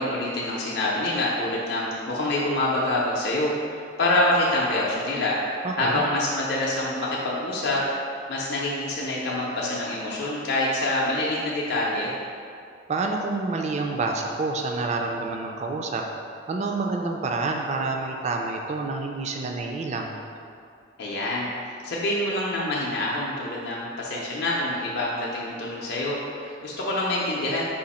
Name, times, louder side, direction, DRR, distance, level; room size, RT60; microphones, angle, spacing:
voice 1, 0.0-7.9 8.3-12.1 21.0-27.6, left 1 dB, 55° left, -5 dB, 0.5 m, -26 dB
voice 2, 5.6-6.0 12.9-16.0 16.5-20.2, right 3 dB, 35° right, 2 dB, 0.3 m, -28 dB
4.9 x 2.4 x 4.1 m, 2.4 s
head